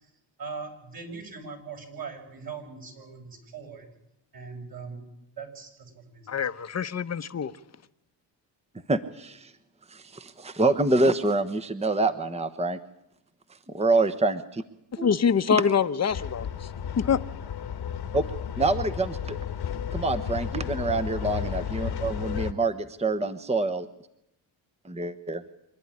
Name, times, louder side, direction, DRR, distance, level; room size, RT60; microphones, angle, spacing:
voice 1, 0.4-3.9 4.3-5.1 5.4-6.3, right 5 dB, 55° right, 6.7 m, -40 dB
voice 2, 6.3-7.5 14.9-16.7 17.0-17.2, left 6 dB, 35° left, 1.0 m, -25 dB
voice 3, 8.9-9.5 9.9-12.8 13.7-14.6 15.0-15.1 18.1-18.2 18.6-19.4 19.9-23.9 24.8-25.4, right 2 dB, 15° right, 1.1 m, -26 dB
sound 1, 16.1-22.5, left 8 dB, 60° left, 1.3 m, -33 dB
26.0 x 11.5 x 9.9 m
cardioid pair, 85°, 44 cm